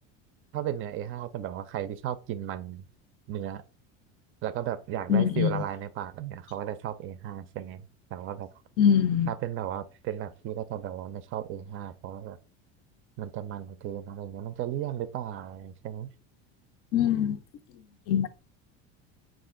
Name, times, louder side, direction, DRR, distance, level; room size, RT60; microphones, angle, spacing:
voice 1, 0.5-2.9 3.3-3.6 4.4-8.5 9.3-12.4 13.2-16.1, right 11 dB, 40° right, 0.4 m, -35 dB
voice 2, 5.1-5.6 8.8-9.3 16.9-17.4 18.1-18.3, left 8 dB, 50° left, 0.5 m, -23 dB
5.1 x 2.5 x 3.6 m
supercardioid pair, 135°, 32 cm